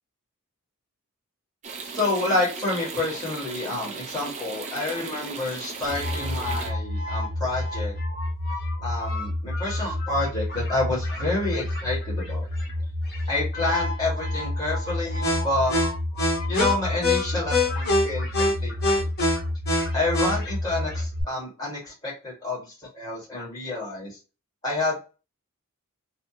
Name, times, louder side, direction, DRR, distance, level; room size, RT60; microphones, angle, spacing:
sound 1, 1.6-6.7, right 4 dB, 30° right, 0.5 m, -36 dB
voice 1, 2.0-7.9 8.8-12.5 13.3-15.8 16.5-18.7 19.0-19.1 19.9-24.2 24.6-25.1, left 2 dB, 15° left, -6 dB, 1.7 m, -29 dB
sound 2, 5.9-21.2, left 1 dB, 45° left, 1.2 m, -27 dB
3.3 x 2.2 x 2.8 m, 0.31 s
head